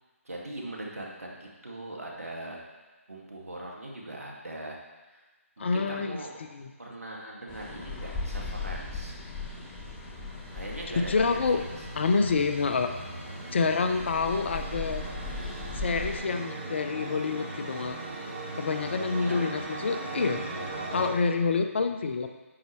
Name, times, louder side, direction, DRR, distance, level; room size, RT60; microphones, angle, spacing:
voice 1, 0.2-2.6 3.1-4.8 5.1-5.2 5.6-6.4 6.8-9.2 10.5-11.8 19.0-19.4, right 1 dB, 85° right, -2 dB, 2.1 m, -40 dB
voice 2, 5.6-6.2 6.5-6.7 11.0-11.6 12.0-12.9 13.5-15.0 15.7-18.0 18.6-20.4 20.9-22.3, left 4 dB, 50° left, 7 dB, 0.8 m, -27 dB
sound 1, 7.5-16.2, left 3 dB, 15° left, 1.0 m, -39 dB
sound 2, 9.5-21.1, right 2 dB, 35° right, 1.9 m, -39 dB
9.7 x 6.7 x 3.2 m, 1.2 s
figure-of-eight pair, 150°, 8 cm